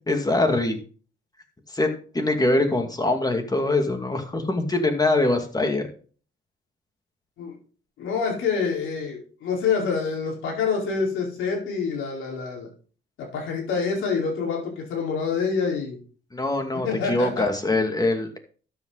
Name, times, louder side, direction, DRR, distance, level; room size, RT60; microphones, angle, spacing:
voice 1, 0.1-0.8 1.7-1.9 2.1-5.9 16.3-18.4, left 2 dB, 20° left, 5 dB, 2.4 m, -23 dB
voice 2, 8.0-12.7 13.2-16.0 16.8-17.4, left 5 dB, 85° left, -1 dB, 4.5 m, -26 dB
12.5 x 8.1 x 4.1 m, 0.41 s
cardioid pair, 90°, 20 cm